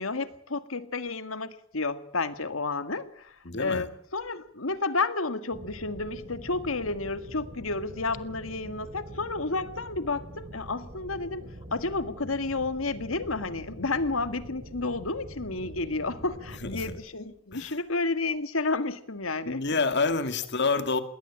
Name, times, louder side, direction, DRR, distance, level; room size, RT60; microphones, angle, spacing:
voice 1, 0.0-11.4 11.7-19.6, left 3 dB, 80° left, 1.9 m, -31 dB
voice 2, 3.4-3.9 16.6-17.0 17.5-17.8 19.4-21.0, left 4 dB, 55° left, 2.3 m, -28 dB
sound 1, 5.5-17.0, equal, 45° right, 4.8 m, -45 dB
21.0 x 18.0 x 8.7 m
head